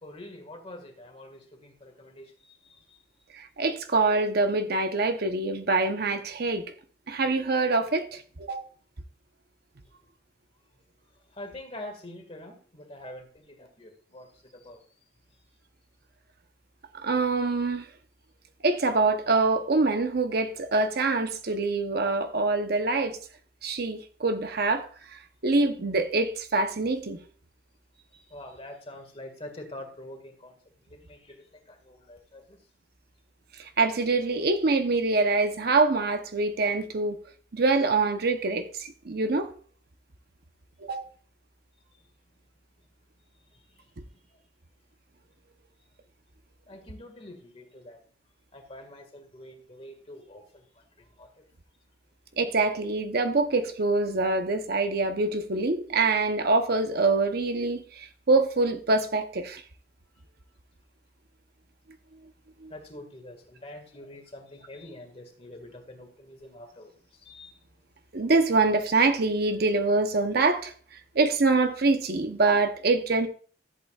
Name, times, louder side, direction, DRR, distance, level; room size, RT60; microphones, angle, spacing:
voice 1, 0.0-3.0 11.3-14.9 27.9-32.6 43.5-44.4 46.7-48.0 48.5-51.5 62.7-67.6, left 1 dB, 30° left, 1.8 m, -46 dB
voice 2, 3.3-6.7 7.1-8.6 16.9-17.9 18.6-23.2 23.6-27.2 33.6-37.2 37.5-39.5 40.8-41.0 52.4-59.6 62.6-62.7 68.1-70.7 71.1-73.3, right 3 dB, 55° right, 0.8 m, -25 dB
14.0 x 8.1 x 2.4 m
head